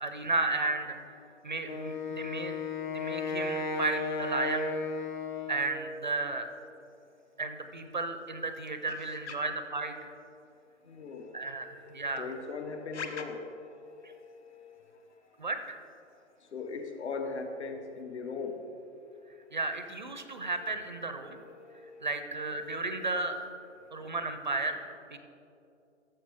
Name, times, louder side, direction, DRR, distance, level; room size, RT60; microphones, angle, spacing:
voice 1, 0.0-1.2 1.4-2.6 2.9-4.7 5.5-6.5 7.4-10.1 11.3-12.3 14.0-14.1 15.4-15.8 19.5-21.4 22.0-23.4 23.9-25.2, right 3 dB, 40° right, 7 dB, 0.5 m, -34 dB
Wind instrument woodwind instrument, 1.6-5.9, left 3 dB, 40° left, 0.7 m, -34 dB
voice 2, 10.8-15.0 16.5-18.6 20.3-20.5 20.8-22.2, left 4 dB, 60° left, 5 dB, 1.2 m, -40 dB
14.0 x 7.1 x 3.5 m, 2.7 s
hypercardioid pair, 170°, 37 cm